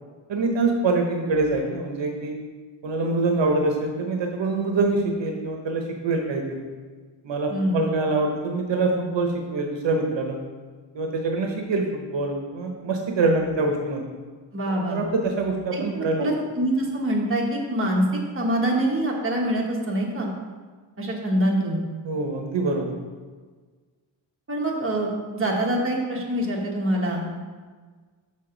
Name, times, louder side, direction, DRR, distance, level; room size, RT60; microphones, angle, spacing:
voice 1, 0.3-2.4 2.8-6.7 7.2-10.4 10.9-14.0 14.8-16.3 22.0-22.9, right 3 dB, 65° right, 3 dB, 0.9 m, -25 dB
voice 2, 7.5-7.9 14.5-15.0 15.7-18.0 18.3-20.3 21.0-21.8 24.5-27.2, right 1 dB, 25° right, -2 dB, 1.2 m, -25 dB
6.5 x 5.7 x 3.8 m, 1.5 s
wide cardioid pair, 135°, 47 cm